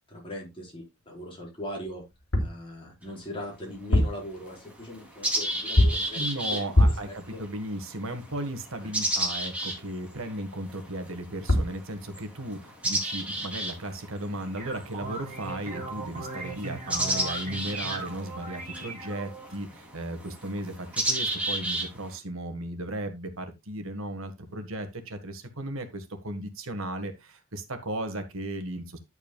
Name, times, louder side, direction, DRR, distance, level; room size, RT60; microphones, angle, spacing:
voice 1, 0.1-2.0 2.4-6.9 7.3-7.4 8.8-8.9, left 1 dB, 25° left, -2 dB, 4.6 m, -40 dB
sound 1, 2.1-2.6 3.7-4.3 5.8-6.1 6.7-7.2 11.2-11.3 11.5-11.8, left 1 dB, 75° left, 3.0 m, -22 dB
sound 2, 3.0-3.1 4.0-4.1 4.5-22.2, right 1 dB, 5° right, 3.1 m, -33 dB
voice 2, 6.1-29.0, right 1 dB, 65° right, 7 dB, 1.7 m, -36 dB
sound 3, 14.3-19.6, right 3 dB, 35° right, 3.8 m, -39 dB
11.0 x 8.2 x 2.4 m, 0.22 s
head